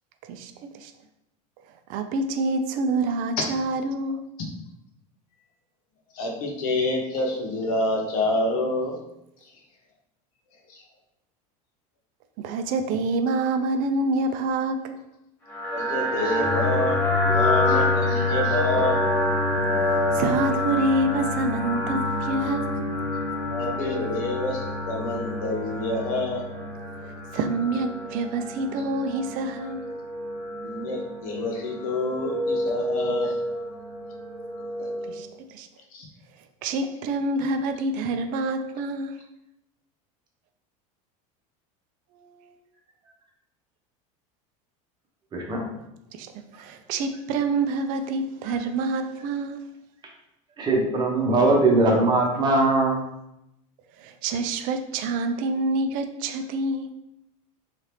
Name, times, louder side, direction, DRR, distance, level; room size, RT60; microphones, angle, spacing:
voice 1, 0.2-0.9 1.9-4.3 12.4-15.0 19.9-22.7 27.3-29.8 35.1-35.7 36.6-39.2 42.2-42.3 46.1-49.7 54.0-56.9, right 2 dB, 50° right, 8 dB, 0.4 m, -27 dB
voice 2, 6.1-9.0 10.7-10.8 15.7-17.0 17.3-19.0 23.5-26.5 30.6-33.4 34.8-34.9 35.9-36.1, left 2 dB, 85° left, 1 dB, 0.8 m, -27 dB
sound 1, 15.5-35.2, left 1 dB, 10° left, 0.9 m, -27 dB
voice 3, 45.3-45.6 50.6-53.0, right 2 dB, 25° right, -1 dB, 0.8 m, -20 dB
2.8 x 2.4 x 3.3 m, 0.85 s
supercardioid pair, 135°, 18 cm